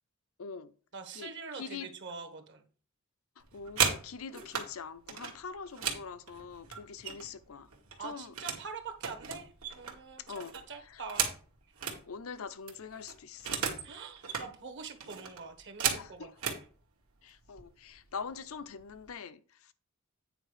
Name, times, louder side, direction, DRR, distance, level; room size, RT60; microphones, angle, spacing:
voice 1, 0.4-0.7 1.1-1.9 3.4-7.7 8.0-8.3 10.3-10.6 10.8-11.0 12.0-13.7 15.9-16.3 17.2-19.7, left 5 dB, 70° left, 0.6 m, -44 dB
voice 2, 0.9-2.6 8.0-11.3 13.8-16.6, right 4 dB, 55° right, 1.3 m, -44 dB
Bolt lock, 3.4-4.7 5.1-7.4 7.7-8.7 9.0-12.0 12.4-12.5 12.7-13.9 14.2-14.5 15.0-16.6 17.5-17.6 18.0-18.3 18.6-19.1, right 7 dB, 75° right, 1.7 m, -35 dB
8.9 x 4.6 x 5.0 m
head